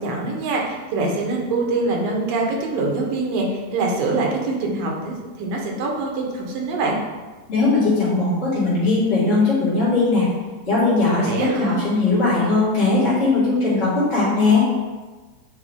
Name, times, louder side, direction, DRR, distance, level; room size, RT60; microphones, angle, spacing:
voice 1, 0.0-7.0 11.2-11.9, right 3 dB, 80° right, -1 dB, 2.8 m, -24 dB
voice 2, 7.5-10.2 10.7-14.7, left 3 dB, 20° left, -10 dB, 1.9 m, -19 dB
8.7 x 4.6 x 3.6 m, 1.3 s
omnidirectional pair, 4.0 m